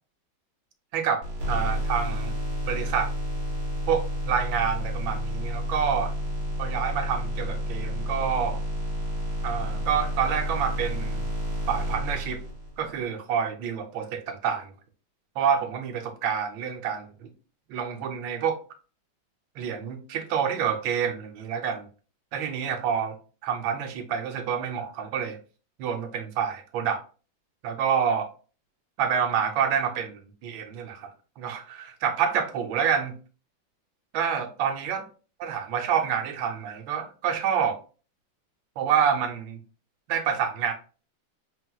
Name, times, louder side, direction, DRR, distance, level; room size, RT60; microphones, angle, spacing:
voice 1, 0.9-2.3 2.6-3.1 3.9-6.1 6.6-8.6 9.4-11.3 11.7-12.4 12.8-14.7 15.4-17.3 17.7-18.6 19.6-21.9 22.3-23.2 23.4-25.4 25.8-27.0 27.6-28.3 29.0-31.1 31.4-33.1 34.1-35.0 35.4-37.8 38.8-39.6 40.1-40.7, right 7 dB, 80° right, 1.5 m, -27 dB
sound 1, 1.2-12.9, equal, 60° right, 2.3 m, -30 dB
4.3 x 4.2 x 2.3 m
omnidirectional pair, 2.1 m